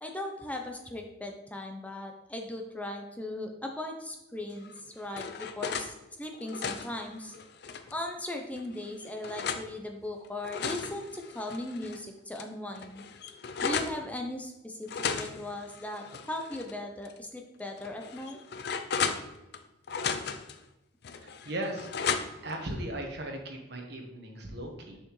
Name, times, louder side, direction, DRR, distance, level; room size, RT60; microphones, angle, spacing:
voice 1, 0.0-7.3 7.9-13.0 13.6-18.4, left 1 dB, 10° left, 3 dB, 0.6 m, -38 dB
sound 1, 4.6-5.9 6.3-8.0 8.6-9.7 10.2-12.0 12.4-12.5 12.7-14.0 14.9-16.7 17.0-17.2 17.8-19.6 19.9-20.6 21.0-22.5, left 6 dB, 55° left, 0.5 m, -35 dB
voice 2, 21.4-21.9 22.4-25.0, right 1 dB, 55° right, 2 dB, 1.2 m, -37 dB
6.7 x 5.7 x 3.1 m, 0.98 s
head